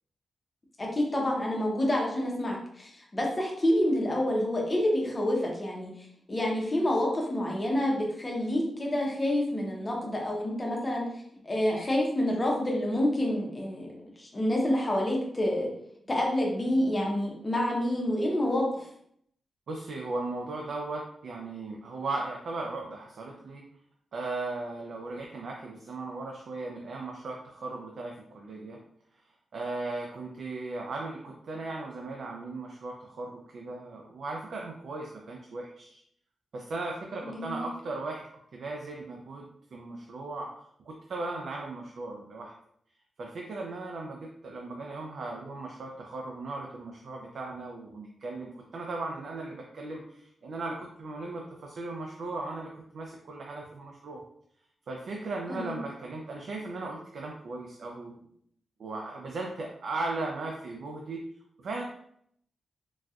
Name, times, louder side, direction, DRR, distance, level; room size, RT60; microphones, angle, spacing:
voice 1, 0.8-5.9 6.3-11.1 11.4-15.7 16.1-18.9 37.2-37.6 55.5-55.8, left 1 dB, 20° left, -2 dB, 0.7 m, -28 dB
voice 2, 19.7-23.6 24.1-28.8 29.5-36.0 36.5-38.2 38.5-42.5 43.2-54.2 54.9-58.3 58.8-61.2 61.6-61.8, right 2 dB, 55° right, 0 dB, 0.4 m, -37 dB
4.0 x 2.2 x 2.3 m, 0.70 s
wide cardioid pair, 180°, 0 cm